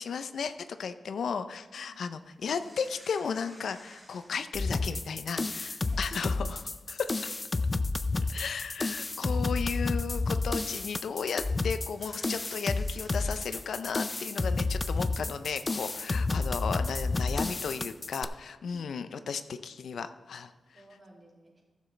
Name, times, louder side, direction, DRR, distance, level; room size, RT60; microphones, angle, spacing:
voice 1, 0.0-7.3 8.3-20.8, left 6 dB, 85° left, 10 dB, 0.5 m, -35 dB
sound 1, 2.4-5.0 5.7-5.8 6.0-6.8 7.0-7.2 8.3-8.4 8.8-9.4 10.0-10.4 11.8-15.5 16.0-16.1, equal, 5° right, 1.7 m, -55 dB
sound 2, 4.5-18.2, left 3 dB, 25° left, 0.4 m, -31 dB
voice 2, 5.8-6.2 8.8-9.0 18.6-18.9 20.7-21.6, right 1 dB, 35° right, -3 dB, 2.8 m, -56 dB
15.0 x 7.2 x 3.3 m, 1.4 s
wide cardioid pair, 145°, 0 cm